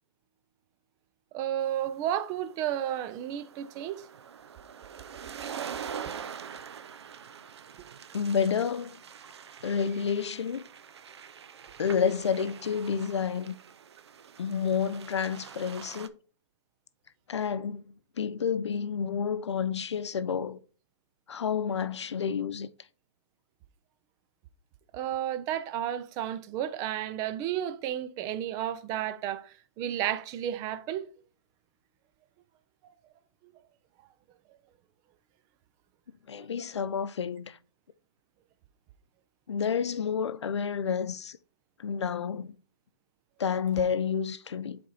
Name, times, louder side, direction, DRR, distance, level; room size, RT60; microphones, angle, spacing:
voice 1, 1.3-4.1 5.4-5.5 24.9-31.1 33.4-33.5, right 11 dB, 25° right, 0.5 m, -32 dB
sound 1, 1.8-16.1, right 7 dB, 70° right, 0.7 m, -44 dB
voice 2, 8.1-9.0 9.6-10.6 11.8-13.6 14.4-16.1 17.3-20.6 21.3-22.7 36.3-37.6 39.5-41.4 41.8-42.6 43.4-44.8, left 7 dB, 80° left, 0.7 m, -30 dB
7.4 x 4.3 x 4.1 m
hypercardioid pair, 140°, 14 cm